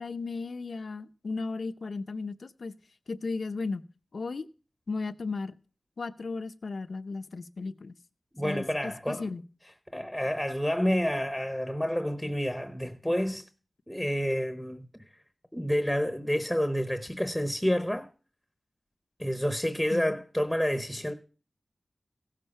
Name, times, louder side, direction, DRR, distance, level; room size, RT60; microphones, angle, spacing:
voice 1, 0.0-2.7 3.1-3.9 4.1-4.5 4.9-5.5 6.0-7.9 8.4-9.4 19.9-20.1, left 3 dB, 75° left, 0.7 m, -35 dB
voice 2, 8.3-9.3 9.9-13.5 13.9-15.2 15.5-18.1 19.2-21.1, equal, 5° left, 0.9 m, -29 dB
16.0 x 7.5 x 5.5 m
wide cardioid pair, 85°, 0 cm